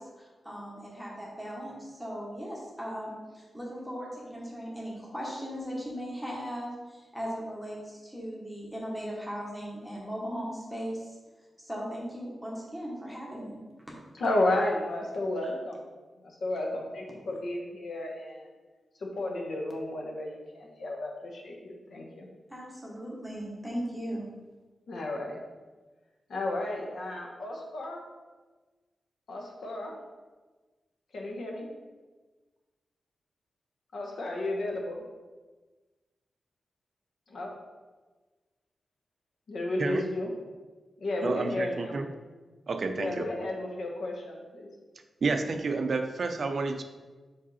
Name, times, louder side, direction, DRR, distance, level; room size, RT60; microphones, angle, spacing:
voice 1, 0.0-11.1 11.6-13.6 22.5-24.3, equal, 5° left, -4 dB, 1.2 m, -38 dB
voice 2, 14.2-15.8 16.2-18.5 19.0-22.3 24.9-25.4 26.3-28.0 29.3-30.0 31.1-31.7 33.9-35.0 37.3-37.6 39.5-40.3 41.0-42.0 43.0-44.7, left 1 dB, 65° left, 0 dB, 1.1 m, -32 dB
voice 3, 41.2-42.1 42.7-43.3 45.2-46.8, right 3 dB, 50° right, 6 dB, 0.5 m, -30 dB
5.0 x 4.7 x 4.2 m, 1.3 s
wide cardioid pair, 160°, 0 cm